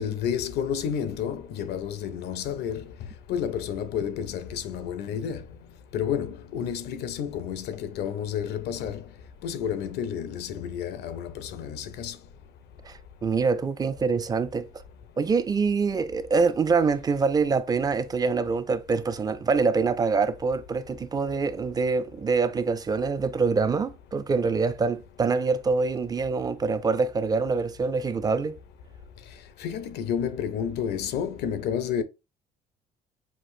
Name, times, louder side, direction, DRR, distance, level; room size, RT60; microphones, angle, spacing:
voice 1, 0.0-2.8 3.3-5.4 5.9-9.0 9.4-12.2 29.6-32.0, left 8 dB, 75° left, 0.6 m, -30 dB
voice 2, 12.8-14.8 15.2-28.6, right 4 dB, 25° right, 0.3 m, -25 dB
5.9 x 2.5 x 2.6 m
cardioid pair, 110°, 17 cm